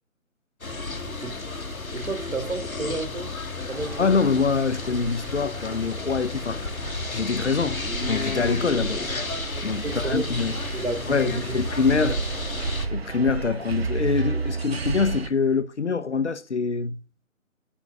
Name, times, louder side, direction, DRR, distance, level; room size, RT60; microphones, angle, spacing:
sound 1, 0.6-12.9, left 3 dB, 80° left, 1.9 m, -32 dB
voice 1, 1.0-1.4 1.9-3.4 3.7-4.0 9.8-10.3 10.7-11.5 12.0-12.2, right 3 dB, 75° right, 2.8 m, -31 dB
sound 2, 3.7-15.3, right 4 dB, 45° right, 1.1 m, -33 dB
voice 2, 4.0-6.7 7.1-9.0 9.6-10.6 11.1-12.2 12.9-17.0, left 5 dB, 55° left, 0.9 m, -25 dB
10.5 x 9.8 x 2.4 m
figure-of-eight pair, 160°, 41 cm